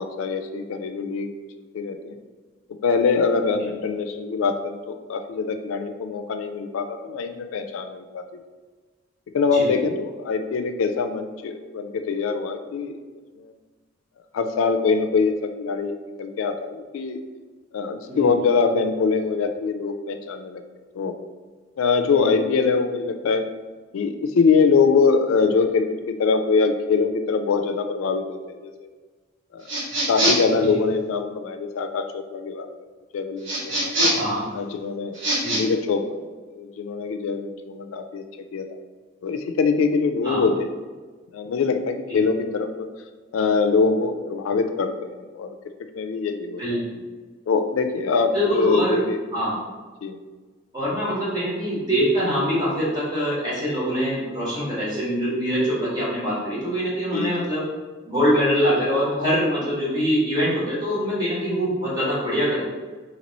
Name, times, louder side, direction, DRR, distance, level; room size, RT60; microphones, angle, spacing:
voice 1, 0.0-1.3 1.7-2.2 2.8-8.2 9.3-12.9 13.4-13.5 14.3-15.9 16.2-17.2 17.7-20.6 20.9-21.1 21.8-23.4 23.9-28.7 29.5-29.7 30.1-32.7 33.1-33.9 34.5-35.2 35.6-36.2 36.5-38.2 38.5-38.7 39.2-40.7 41.3-42.9 43.3-44.9 45.3-45.5 46.0-46.8 47.5-49.2 50.0-50.2 57.1-57.4, left 4 dB, 90° left, 8 dB, 0.3 m, -23 dB
sound 1, 29.7-30.6 33.4-34.3 35.1-35.6, right 1 dB, 70° right, 1.0 m, -23 dB
voice 2, 48.3-49.0 49.3-49.6 50.7-57.7 58.1-62.6, equal, 20° right, -8 dB, 1.4 m, -24 dB
3.0 x 2.9 x 4.1 m, 1.4 s
head